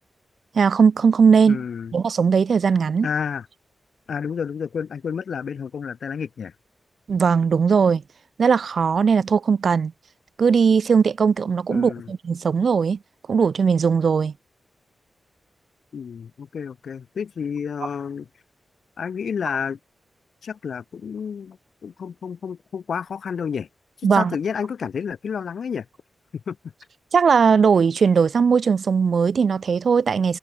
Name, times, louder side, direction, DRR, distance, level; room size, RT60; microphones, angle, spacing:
voice 1, 0.5-1.6 1.9-3.1 7.1-8.0 8.4-9.9 10.4-13.0 13.3-14.3 24.0-24.3 27.1-30.4, right 6 dB, 65° right, 0.3 m, -19 dB
voice 2, 1.5-1.9 3.0-3.5 4.1-6.5 11.7-12.1 15.9-18.3 19.0-19.8 20.4-23.7 24.1-25.9 26.5-26.6, left 6 dB, 80° left, 0.8 m, -30 dB
wide cardioid pair, 125°, 0 cm